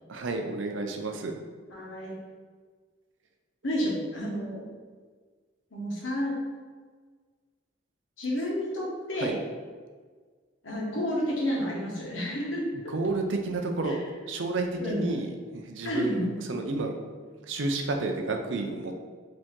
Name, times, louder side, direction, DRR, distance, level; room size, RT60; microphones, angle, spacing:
voice 1, 0.1-1.3 9.2-9.4 12.7-14.0 14.3-16.9 17.4-19.0, right 3 dB, 75° right, 4 dB, 0.6 m, -31 dB
voice 2, 1.7-2.2 3.6-4.7 5.7-6.4 8.2-9.3 10.6-12.6 13.8-13.9 14.8-15.0 15.8-16.4, equal, 85° left, -3 dB, 1.3 m, -30 dB
5.0 x 2.9 x 3.6 m, 1.5 s
head